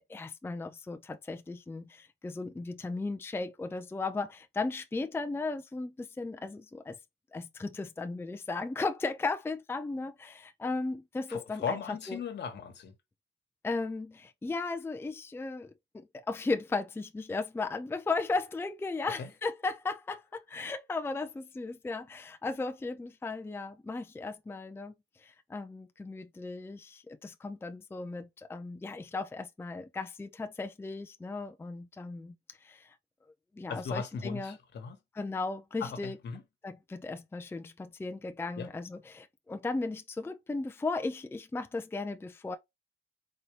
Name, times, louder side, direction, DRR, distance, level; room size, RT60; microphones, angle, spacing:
voice 1, 0.0-7.0 7.3-11.8 12.1-12.2 13.6-24.9 25.2-33.0 33.6-34.6 35.2-36.2 36.6-42.6, left 3 dB, 10° left, 0.5 m, -36 dB
voice 2, 11.3-12.9 19.2-19.3 33.7-35.0 35.8-36.4 38.6-38.7, left 6 dB, 60° left, 1.3 m, -37 dB
4.2 x 2.7 x 3.2 m
cardioid pair, 90°, 20 cm